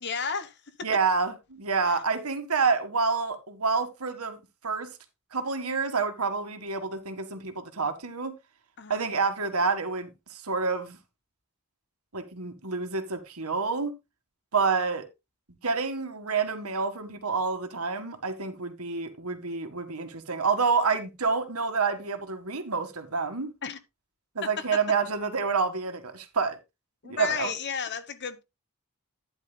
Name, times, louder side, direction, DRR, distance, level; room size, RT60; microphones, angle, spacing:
voice 1, 0.0-0.6 1.8-1.9 8.8-9.0 23.6-23.8 24.4-24.6 27.0-28.4, left 6 dB, 50° left, 1.2 m, -33 dB
voice 2, 0.8-4.4 4.6-4.9 5.3-8.3 8.9-11.0 12.1-13.9 14.5-15.1 15.6-23.5 24.4-26.6 27.0-27.5, right 4 dB, 90° right, 1.8 m, -28 dB
12.5 x 9.9 x 2.3 m
head